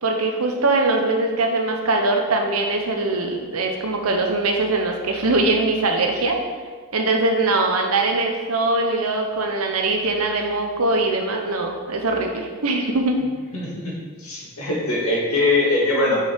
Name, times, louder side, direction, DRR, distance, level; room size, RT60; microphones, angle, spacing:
voice 1, 0.0-6.4 6.9-13.2, right 2 dB, 85° right, 3 dB, 1.0 m, -22 dB
voice 2, 13.5-16.2, left 2 dB, 90° left, -4 dB, 2.0 m, -22 dB
5.8 x 5.5 x 4.5 m, 1.5 s
head